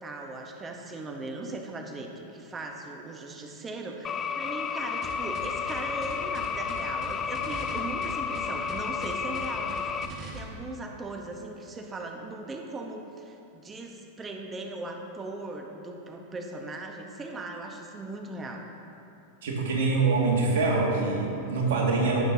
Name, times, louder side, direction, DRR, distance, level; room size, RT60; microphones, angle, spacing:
voice 1, 0.0-18.6, right 2 dB, 20° right, 2 dB, 0.9 m, -39 dB
sound 1, 4.0-10.1, left 6 dB, 30° left, 0.4 m, -32 dB
sound 2, 5.0-10.4, right 3 dB, 40° right, 1.6 m, -41 dB
voice 2, 19.4-22.2, right 3 dB, 75° right, -3 dB, 2.0 m, -25 dB
16.5 x 6.0 x 2.8 m, 2.8 s
hypercardioid pair, 110°, 0 cm